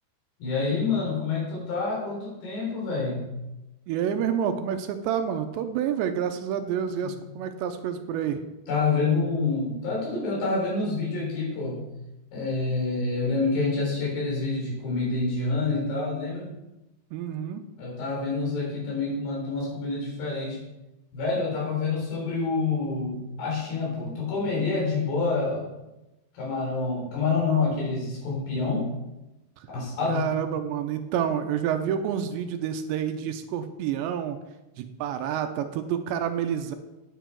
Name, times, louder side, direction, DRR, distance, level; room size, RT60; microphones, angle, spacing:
voice 1, 0.4-3.3 7.0-7.1 8.7-11.8 12.3-16.5 17.8-20.6 21.1-25.7 26.3-28.8 29.7-30.3, left 4 dB, 60° left, -3 dB, 5.7 m, -27 dB
voice 2, 3.9-8.4 17.1-17.7 30.1-34.4 34.8-36.7, right 8 dB, 80° right, 7 dB, 2.7 m, -28 dB
10.5 x 9.1 x 4.5 m, 0.99 s
omnidirectional pair, 5.5 m